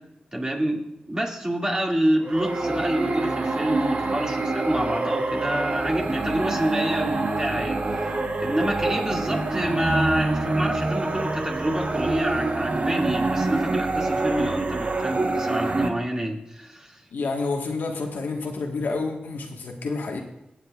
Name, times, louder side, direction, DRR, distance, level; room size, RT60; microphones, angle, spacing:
voice 1, 0.3-0.8 1.1-7.8 8.4-17.0, right 1 dB, 20° right, 0 dB, 2.2 m, -27 dB
sound 1, 2.2-15.9, right 2 dB, 45° right, 1.1 m, -26 dB
voice 2, 17.1-20.2, left 3 dB, 80° left, 1 dB, 1.5 m, -29 dB
19.5 x 8.1 x 2.4 m, 0.86 s
cardioid pair, 50°, 3 cm